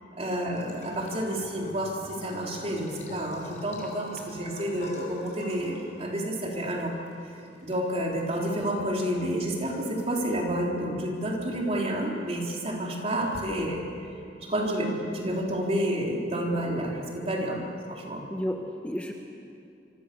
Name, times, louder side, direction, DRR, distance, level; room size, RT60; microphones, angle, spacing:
voice 1, 0.2-7.0 7.6-14.1 14.4-17.6 17.9-18.2, right 1 dB, 35° right, -1 dB, 4.0 m, -30 dB
Bathtub (filling or washing) / Trickle dribble, 0.5-11.5, left 1 dB, 45° left, 5.3 m, -49 dB
voice 2, 18.3-19.1, equal, 10° left, 2 dB, 1.3 m, -32 dB
26.0 x 24.5 x 7.0 m, 2.6 s
head